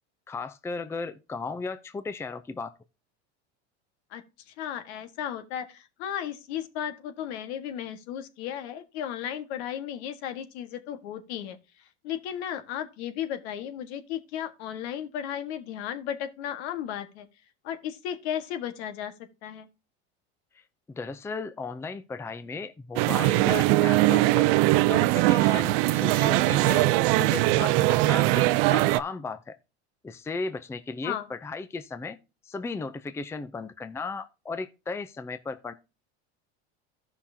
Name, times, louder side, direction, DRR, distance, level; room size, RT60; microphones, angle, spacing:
voice 1, 0.3-2.7 20.6-20.7 20.9-24.5 24.8-26.9 27.2-29.6 30.0-32.2 32.5-35.7, left 4 dB, 10° left, 0.5 m, -35 dB
voice 2, 4.6-11.6 12.0-17.3 17.6-19.1 19.4-19.7 31.0-31.3, left 10 dB, 75° left, 1.6 m, -34 dB
sound 1, 23.0-29.0, right 18 dB, 60° right, 0.5 m, -21 dB
14.0 x 5.8 x 2.8 m
supercardioid pair, 115°, 33 cm